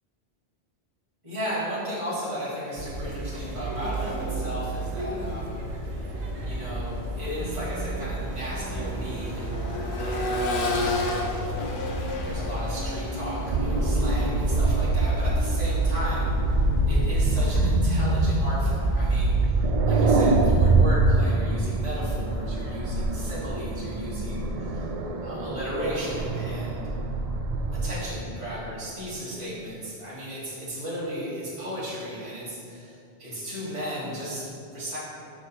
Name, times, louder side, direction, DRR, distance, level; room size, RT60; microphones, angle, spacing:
voice 1, 1.2-5.6 6.4-11.2 12.2-16.6 16.9-19.6 19.8-24.8 25.2-26.9 27.8-35.0, equal, 30° right, -10 dB, 1.6 m, -35 dB
sound 1, 2.8-19.5, right 2 dB, 85° right, 1.2 m, -31 dB
Accelerating revving vroom, 6.8-7.0 7.4-17.3 19.0-19.1, left 2 dB, 55° left, 0.8 m, -33 dB
sound 2, 13.5-27.9, right 2 dB, 55° right, 0.4 m, -24 dB
6.1 x 4.1 x 4.2 m, 2.5 s
omnidirectional pair, 1.1 m